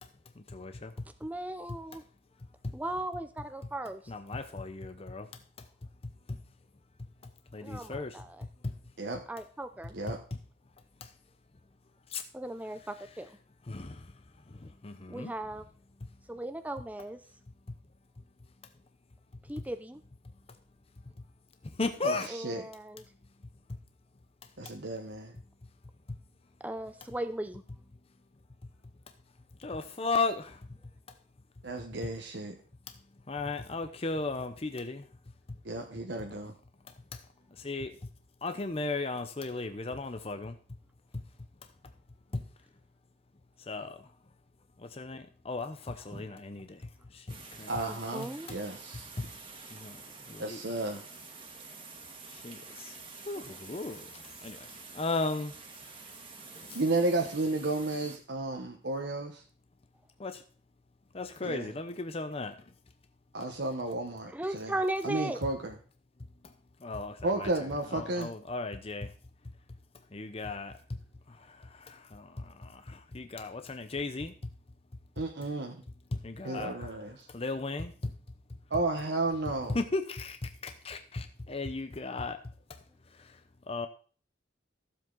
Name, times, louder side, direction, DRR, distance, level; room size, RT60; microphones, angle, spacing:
voice 1, 0.4-1.1 2.6-2.7 4.1-5.7 6.0-6.4 7.0-8.8 10.1-10.4 11.0-11.1 12.1-12.2 13.7-14.1 14.5-15.3 21.7-22.3 23.7-23.8 26.1-26.2 29.6-30.7 31.1-31.2 32.9-33.0 33.3-35.1 35.5-35.6 36.2-36.3 36.9-37.2 37.5-38.0 38.4-40.6 41.1-41.2 42.3-42.4 43.7-44.1 44.8-47.7 48.5-48.6 49.2-49.3 49.7-50.0 50.3-50.6 52.3-53.0 53.2-55.5 56.6-56.8 60.2-60.4 61.1-62.6 66.4-66.5 66.8-67.5 67.9-69.1 70.1-71.0 71.3-74.5 76.1-77.0 77.3-78.1 79.7-82.8 83.1-83.4 83.7-83.9, left 3 dB, 30° left, 8 dB, 0.7 m, -36 dB
voice 2, 1.2-2.0 2.7-4.0 7.6-8.4 9.3-10.0 12.3-13.3 15.1-15.7 16.3-17.2 19.5-20.0 22.3-23.0 26.6-27.6 46.1-46.2 47.9-48.5 64.3-65.4, right 1 dB, 10° right, 9 dB, 0.5 m, -37 dB
voice 3, 22.0-22.6 24.6-25.3 31.6-32.5 35.6-36.5 47.7-49.1 50.4-51.0 56.7-59.4 61.4-61.7 63.3-64.7 65.0-65.7 67.2-68.3 75.2-75.8 76.4-77.3 78.7-79.8, right 2 dB, 60° right, 3 dB, 1.1 m, -33 dB
sound 1, 47.3-58.2, right 4 dB, 30° right, 1.9 m, -48 dB
14.0 x 7.5 x 3.9 m, 0.40 s
head